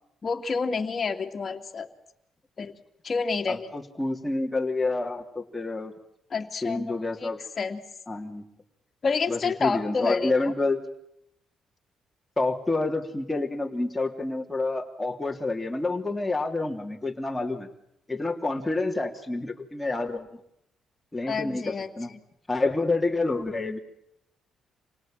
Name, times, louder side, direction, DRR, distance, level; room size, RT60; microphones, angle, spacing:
voice 1, 0.2-1.9 2.6-2.7 3.0-3.7 6.3-7.3 7.6-7.8 9.0-10.3 21.3-22.2, left 4 dB, 40° left, 3 dB, 2.5 m, -29 dB
voice 2, 3.5-5.9 6.6-7.4 8.1-8.4 9.3-10.8 12.4-17.7 18.1-20.3 21.1-22.1 22.5-23.8, left 2 dB, 10° left, 0 dB, 3.1 m, -28 dB
27.5 x 18.5 x 9.0 m, 0.80 s
cardioid pair, 90°, 0 cm